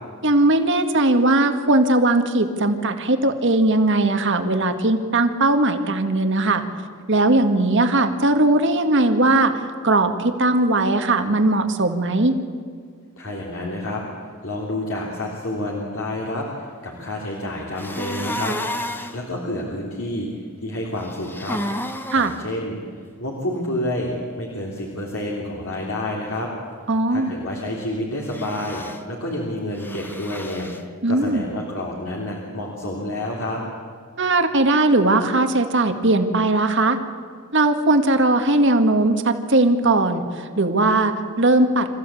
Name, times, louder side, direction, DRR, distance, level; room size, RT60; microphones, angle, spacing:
voice 1, 0.2-6.6 7.1-12.4 22.1-22.3 26.9-27.3 31.0-31.4 34.2-37.0 37.5-41.9, right 2 dB, 60° right, 7 dB, 1.9 m, -19 dB
voice 2, 13.2-14.0 14.4-18.6 19.1-20.3 20.6-21.6 22.1-22.8 23.2-26.5 27.1-33.6, left 1 dB, 70° left, -3 dB, 3.4 m, -29 dB
sound 1, 17.8-19.2 21.0-22.4 28.2-29.0 29.8-30.8, left 1 dB, 10° left, 1.3 m, -31 dB
27.0 x 15.0 x 8.5 m, 2.1 s
head